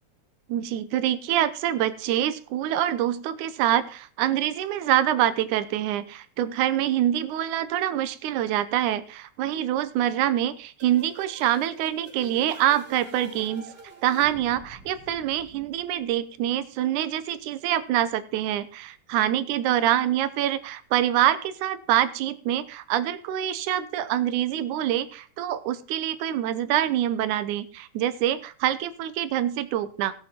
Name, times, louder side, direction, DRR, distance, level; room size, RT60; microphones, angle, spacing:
voice 1, 0.5-13.7 14.0-30.1, right 12 dB, 80° right, 14 dB, 2.2 m, -25 dB
sound 1, 10.8-16.5, right 2 dB, 35° right, 2.3 m, -47 dB
17.0 x 7.5 x 4.3 m, 0.42 s
omnidirectional pair, 3.6 m